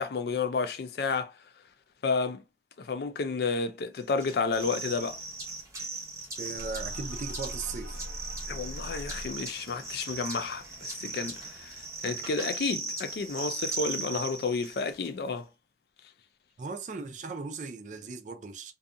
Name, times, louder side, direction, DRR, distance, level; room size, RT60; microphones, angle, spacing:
voice 1, 0.0-1.3 2.0-2.4 2.8-5.2 8.5-11.8 12.0-15.5, left 4 dB, 60° left, 0.4 m, -31 dB
sound 1, 4.2-15.1, right 3 dB, 20° right, 0.8 m, -38 dB
voice 2, 6.4-8.0 16.6-18.7, right 4 dB, 45° right, 0.4 m, -38 dB
sound 2, 6.6-12.0, equal, 80° right, 0.7 m, -43 dB
2.6 x 2.4 x 2.4 m
head